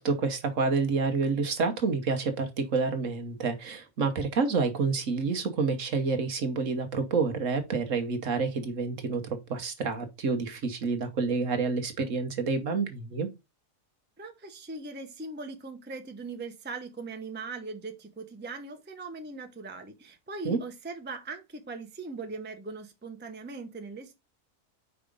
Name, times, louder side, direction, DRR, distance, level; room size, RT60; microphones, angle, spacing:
voice 1, 0.0-13.3 20.4-20.6, right 4 dB, 55° right, 1.3 m, -28 dB
voice 2, 14.2-24.1, right 3 dB, 10° right, 0.7 m, -40 dB
5.0 x 4.8 x 5.1 m
omnidirectional pair, 1.6 m